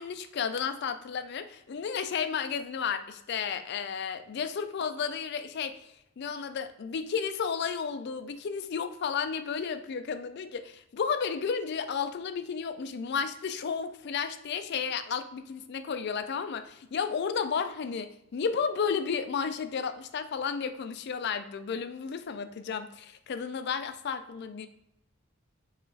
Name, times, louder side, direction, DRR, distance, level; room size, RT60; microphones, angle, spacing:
voice 1, 0.0-5.7 6.2-24.7, left 6 dB, 55° left, 10 dB, 0.4 m, -32 dB
4.9 x 2.4 x 4.0 m, 0.80 s
head